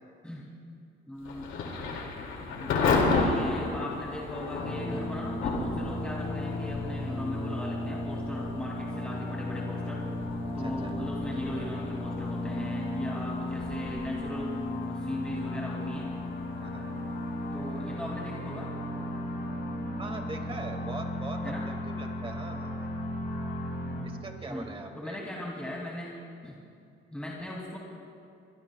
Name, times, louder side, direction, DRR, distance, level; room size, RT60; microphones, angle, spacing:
voice 1, 1.1-1.8 2.6-10.0 10.5-14.6 14.8-16.1 17.5-18.7 21.4-21.7 24.5-24.7 25.0-26.2 26.4-26.6 27.1-27.8, left 1 dB, 5° left, -3 dB, 2.4 m, -38 dB
Thunder / Rain, 1.2-17.9, left 3 dB, 85° left, 2.3 m, -34 dB
sound 1, 4.6-24.0, left 1 dB, 60° left, 4.5 m, -35 dB
voice 2, 10.6-10.9 16.6-16.9 20.0-23.1 24.0-25.2, right 3 dB, 25° right, 3 dB, 2.0 m, -42 dB
24.0 x 21.5 x 2.3 m, 2.4 s
cardioid pair, 90°, 20 cm